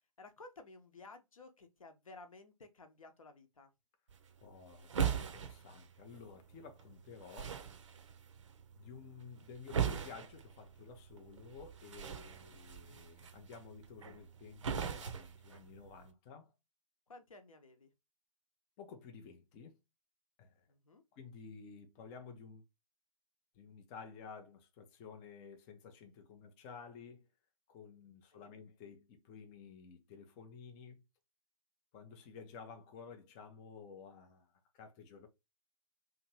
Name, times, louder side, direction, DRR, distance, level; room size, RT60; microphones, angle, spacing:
voice 1, 0.2-3.7 17.1-17.9 20.7-21.0 28.3-28.5, left 3 dB, 65° left, 0.7 m, -55 dB
sound 1, 4.1-16.1, right 7 dB, 55° right, 0.6 m, -41 dB
voice 2, 4.4-7.6 8.8-16.5 18.8-19.8 20.4-20.6 21.1-22.6 23.5-27.3 27.7-31.0 31.9-35.3, left 5 dB, 15° left, 0.3 m, -53 dB
2.9 x 2.5 x 2.8 m
figure-of-eight pair, 125°, 19 cm